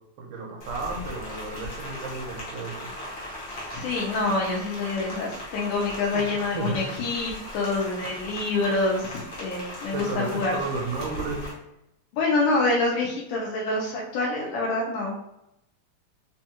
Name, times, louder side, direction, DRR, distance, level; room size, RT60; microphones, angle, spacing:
voice 1, 0.2-2.9 6.1-6.9 9.9-11.5, right 3 dB, 75° right, -1 dB, 2.1 m, -33 dB
Rain, 0.6-11.5, left 1 dB, 60° left, 1.2 m, -38 dB
voice 2, 3.7-10.5 12.1-15.2, left 3 dB, 80° left, -3 dB, 2.2 m, -26 dB
5.2 x 2.3 x 2.9 m, 0.84 s
omnidirectional pair, 3.7 m